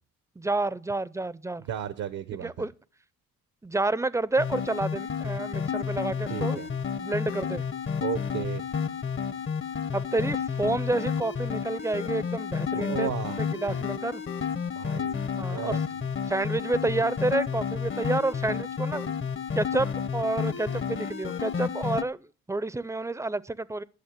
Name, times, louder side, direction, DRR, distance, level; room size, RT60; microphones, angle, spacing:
voice 1, 0.4-1.6 2.4-2.7 3.6-6.6 7.0-7.6 9.9-13.1 13.4-14.2 15.4-15.8 16.3-19.1 19.5-22.2 22.5-23.8, right 2 dB, 10° right, 0.5 m, -29 dB
voice 2, 1.7-2.7 6.3-6.7 8.0-8.6 12.7-13.4 14.6-16.1, right 9 dB, 70° right, 0.8 m, -35 dB
sound 1, 4.4-22.0, left 6 dB, 40° left, 0.8 m, -31 dB
11.5 x 6.2 x 7.4 m
cardioid pair, 90°, 30 cm